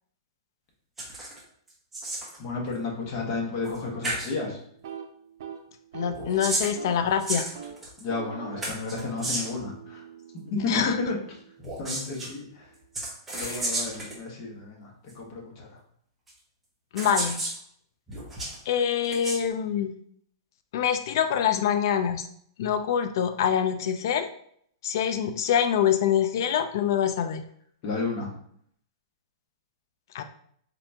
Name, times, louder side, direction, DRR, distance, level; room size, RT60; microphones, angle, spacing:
sound 1, 1.0-1.4 1.7-2.4 3.6-3.8 4.0-4.3 6.1-8.0 8.6-9.6 11.6-12.3 12.9-14.2 15.1-15.2 16.3-16.4 17.0-17.6 18.1-18.6 19.0-19.4, right 1 dB, 10° right, 0.9 m, -32 dB
voice 1, 2.4-4.6 8.0-10.0 10.4-10.7 11.1-11.4 11.8-12.7 13.3-15.8 27.8-28.3, left 3 dB, 35° left, -1 dB, 1.2 m, -33 dB
sound 2, 4.7-7.1 7.4-7.8 8.1-11.9, right 7 dB, 60° right, 0.7 m, -43 dB
voice 2, 5.9-7.4 10.7-11.0 13.4-13.7 16.9-17.4 18.7-19.9 20.7-22.3 22.6-24.3 24.8-27.4 30.1-30.2, left 8 dB, 60° left, 8 dB, 0.4 m, -25 dB
4.0 x 3.3 x 2.8 m, 0.64 s
hypercardioid pair, 155°, 2 cm